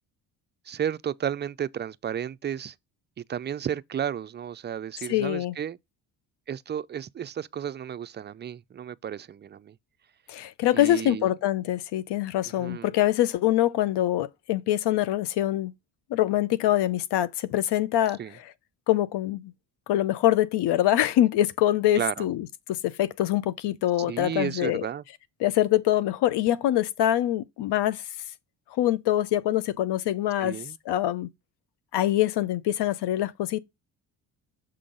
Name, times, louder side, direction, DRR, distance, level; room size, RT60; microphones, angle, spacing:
voice 1, 0.7-2.7 3.3-5.8 6.5-9.8 10.7-11.3 12.6-12.9 18.2-18.4 21.9-22.3 24.0-25.0 30.4-30.8, right 9 dB, 25° right, 0.4 m, -33 dB
voice 2, 5.1-5.5 10.3-15.7 16.1-18.2 18.9-19.5 19.9-22.5 22.8-24.9 25.4-28.0 28.8-30.6 30.9-31.3 31.9-33.6, left 13 dB, 65° left, 0.8 m, -24 dB
6.9 x 3.7 x 3.8 m
supercardioid pair, 65°, 44 cm